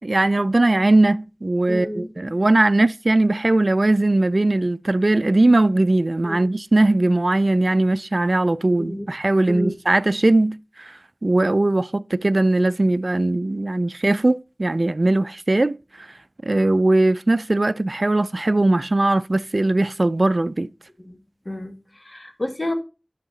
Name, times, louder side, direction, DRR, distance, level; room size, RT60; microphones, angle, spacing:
voice 1, 0.0-16.1 16.4-20.7, right 2 dB, 60° right, 0.4 m, -19 dB
voice 2, 1.7-2.1 6.2-6.4 8.8-9.1 9.5-9.7 21.0-21.2 21.4-22.7, left 1 dB, 45° left, 1.6 m, -30 dB
11.0 x 5.8 x 4.0 m
wide cardioid pair, 50°, 0 cm